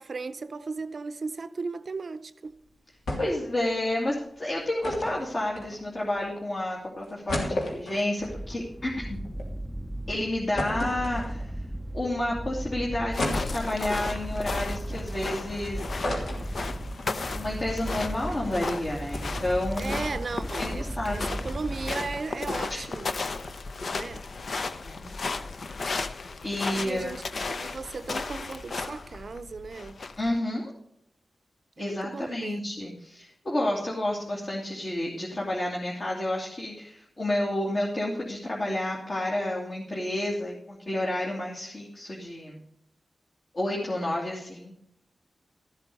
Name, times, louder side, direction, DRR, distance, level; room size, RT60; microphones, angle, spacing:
voice 1, 0.0-2.5 19.8-23.2 23.9-24.3 26.7-27.2 27.5-30.0 31.8-32.6, right 4 dB, 55° right, 0.6 m, -36 dB
sound 1, 3.1-3.5 3.8-3.9 4.8-6.1 6.6-6.7 7.0-9.5 9.9-10.0 10.6-11.7 12.2-12.3 13.2-14.0 14.6-15.5 15.8-17.1 17.5-17.6 17.8-18.1, left 1 dB, 85° left, 3.1 m, -33 dB
voice 2, 3.2-9.2 10.1-11.5 11.9-15.9 17.0-20.0 20.6-21.3 22.7-22.8 24.8-25.0 26.4-27.1 30.2-30.7 31.8-42.6 43.5-44.7, left 1 dB, 45° left, 2.5 m, -30 dB
sound 2, 8.2-22.5, right 1 dB, 5° right, 0.5 m, -37 dB
sound 3, 13.1-30.4, left 3 dB, 60° left, 0.8 m, -35 dB
13.0 x 8.2 x 5.3 m
wide cardioid pair, 95°, 0 cm